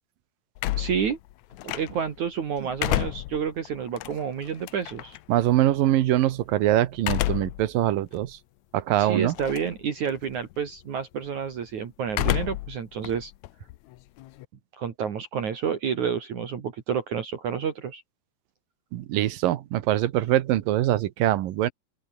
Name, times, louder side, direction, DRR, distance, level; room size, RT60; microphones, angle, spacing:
sound 1, 0.6-2.2 2.6-5.2 7.0-7.7 8.2-8.3 9.3-9.8 10.1-10.5 12.1-12.8 13.0-14.5, left 16 dB, 75° left, 1.7 m, -30 dB
voice 1, 0.8-1.2 1.6-5.2 9.0-13.3 14.7-18.0, right 7 dB, 55° right, 3.5 m, -29 dB
voice 2, 5.3-8.4 8.7-9.3 18.9-21.7, right 13 dB, 75° right, 2.8 m, -23 dB
open air
omnidirectional pair, 4.1 m